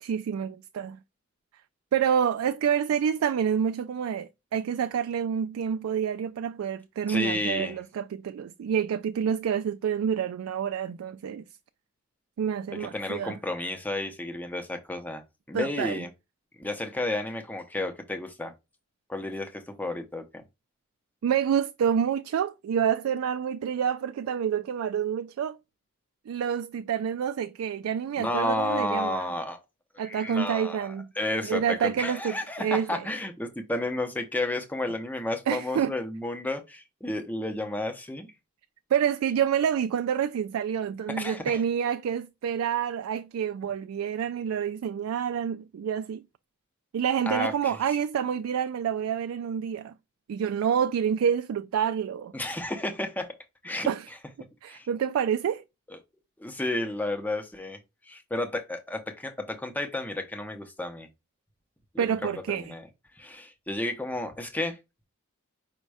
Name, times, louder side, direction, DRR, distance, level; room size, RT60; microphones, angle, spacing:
voice 1, 0.0-1.0 1.9-11.4 12.4-13.4 15.5-16.0 21.2-25.6 26.3-29.3 30.0-31.1 31.4-33.0 35.5-35.9 38.9-46.2 46.9-49.9 50.3-52.3 53.9-54.1 54.6-55.6 62.0-62.7, right 8 dB, 85° right, 0.3 m, -28 dB
voice 2, 7.1-7.8 12.8-16.1 16.6-18.5 19.1-20.2 28.2-29.6 29.9-38.3 41.2-41.6 47.3-47.8 52.3-53.3 53.6-53.9 54.7-54.9 56.4-57.8 58.1-61.1 61.9-62.9 63.2-64.8, left 1 dB, 10° left, 0.6 m, -32 dB
5.2 x 2.2 x 4.7 m
head